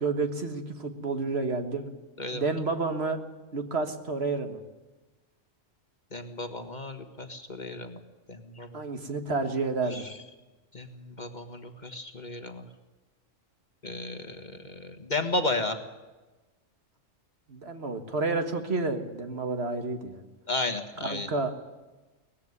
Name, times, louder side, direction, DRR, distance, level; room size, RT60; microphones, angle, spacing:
voice 1, 0.0-1.9 2.3-3.2 3.5-4.6 8.7-10.0 17.5-20.2 21.0-21.5, right 3 dB, 55° right, 7 dB, 1.8 m, -30 dB
voice 2, 6.1-8.0 8.3-8.7 9.9-10.0 10.7-12.6 13.8-15.8 20.5-21.3, left 2 dB, 35° left, 7 dB, 1.5 m, -33 dB
18.5 x 15.0 x 9.7 m, 1.2 s
omnidirectional pair, 1.3 m